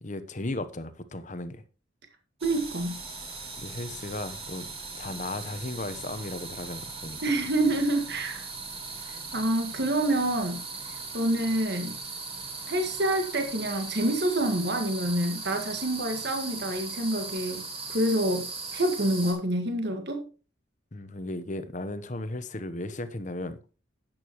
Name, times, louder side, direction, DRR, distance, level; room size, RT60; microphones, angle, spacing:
voice 1, 0.0-1.6 3.6-7.2 20.9-23.6, left 2 dB, 40° left, 1.0 m, -36 dB
sound 1, 2.4-19.3, right 3 dB, 30° right, 4.1 m, -39 dB
voice 2, 2.4-3.0 7.2-8.5 9.0-10.6 10.9-12.0 12.7-17.6 17.9-20.2, right 1 dB, 55° right, 1.7 m, -27 dB
11.0 x 9.0 x 3.0 m
head